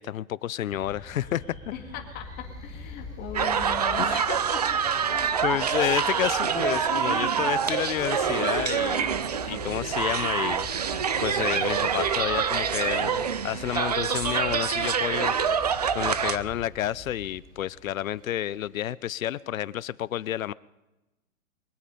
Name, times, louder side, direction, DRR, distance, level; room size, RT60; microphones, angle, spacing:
voice 1, 0.0-1.6 4.0-4.3 5.4-9.1 9.5-10.7 11.2-20.5, left 12 dB, 70° left, 0.6 m, -30 dB
sound 1, 0.7-18.6, left 2 dB, 10° right, 2.0 m, -44 dB
voice 2, 1.7-2.3 2.6-5.7 6.4-7.0, left 8 dB, 20° left, 2.1 m, -39 dB
sound 2, 3.3-16.4, right 7 dB, 30° right, 0.4 m, -26 dB
23.0 x 8.5 x 5.3 m
hypercardioid pair, 145°, 42 cm